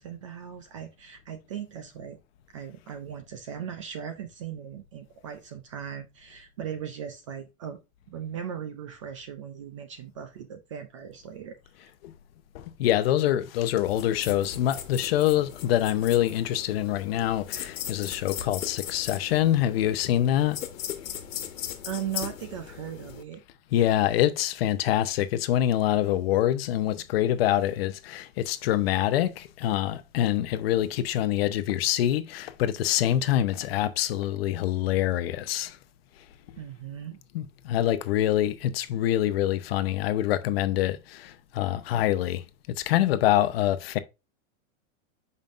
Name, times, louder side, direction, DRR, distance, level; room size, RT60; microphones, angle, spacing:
voice 1, 0.0-2.2 2.5-7.8 8.1-11.9 21.8-23.4 36.6-37.2, right 9 dB, 25° right, 0.4 m, -38 dB
voice 2, 12.5-20.6 23.7-35.8 37.3-42.4 42.8-44.0, left 12 dB, 45° left, 0.7 m, -25 dB
sound 1, 13.8-23.2, left 10 dB, 75° left, 1.4 m, -38 dB
7.3 x 5.4 x 2.5 m
supercardioid pair, 160°, 41 cm